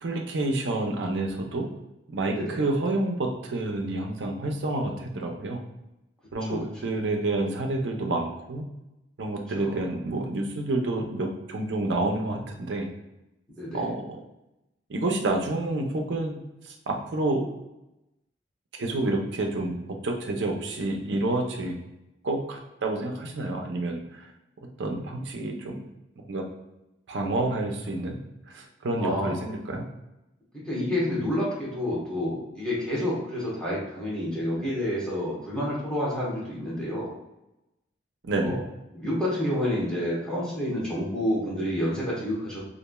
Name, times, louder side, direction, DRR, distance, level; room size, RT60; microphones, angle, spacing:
voice 1, 0.0-1.7 2.1-5.6 6.3-8.6 9.2-12.9 13.7-14.2 14.9-16.4 16.6-17.4 18.8-19.8 20.0-21.7 22.2-24.3 24.8-25.8 26.2-26.4 27.1-28.2 28.5-29.9 38.2-38.6, right 2 dB, 70° right, 2 dB, 0.5 m, -29 dB
voice 2, 6.5-6.9 9.6-9.8 13.6-13.9 29.0-29.4 30.7-37.1 38.4-38.6 38.9-42.6, left 1 dB, 5° left, -7 dB, 1.0 m, -29 dB
3.0 x 2.4 x 2.2 m, 0.92 s
head